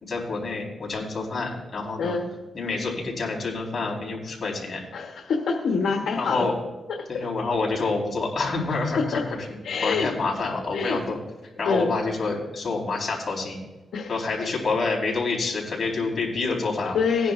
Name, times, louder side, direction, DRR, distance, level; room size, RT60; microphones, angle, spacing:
voice 1, 0.0-2.2 2.5-4.8 5.8-6.6 7.1-9.2 9.5-11.2 11.6-13.6 14.1-17.0, left 3 dB, 40° left, -3 dB, 4.3 m, -28 dB
voice 2, 2.0-2.3 4.9-6.4 9.0-9.2 9.6-10.1 10.7-11.0 11.6-12.0 13.9-14.1 14.4-14.5 16.5-16.6 16.9-17.3, left 5 dB, 85° left, 1 dB, 1.1 m, -25 dB
18.5 x 10.5 x 2.5 m, 1.1 s
cardioid pair, 115°, 0 cm